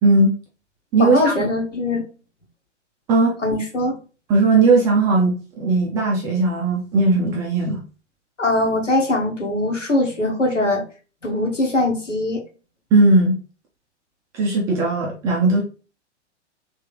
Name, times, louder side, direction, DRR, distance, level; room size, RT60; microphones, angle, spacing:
voice 1, 0.0-0.3 0.9-1.3 3.1-3.4 4.3-7.8 12.9-13.4 14.3-15.6, right 3 dB, 10° right, -3 dB, 0.3 m, -17 dB
voice 2, 1.0-2.0 3.4-4.0 8.4-10.8 11.2-12.4, left 2 dB, 85° left, 0 dB, 1.5 m, -21 dB
3.4 x 3.3 x 3.2 m, 0.35 s
figure-of-eight pair, 105°, 36 cm